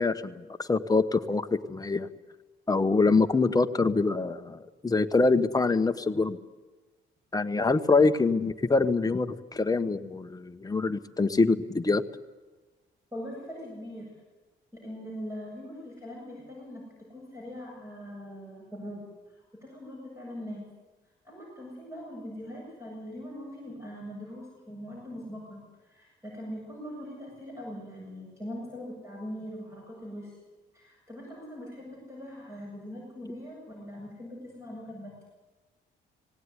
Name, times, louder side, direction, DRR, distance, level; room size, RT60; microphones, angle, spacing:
voice 1, 0.0-2.1 2.7-6.4 7.3-12.0, left 3 dB, 20° left, 8 dB, 1.2 m, -25 dB
voice 2, 13.1-14.1 14.7-19.0 19.6-20.7 21.2-30.3 30.7-35.1, equal, 15° right, -3 dB, 7.8 m, -41 dB
18.0 x 18.0 x 9.8 m, 1.2 s
cardioid pair, 90°, 20 cm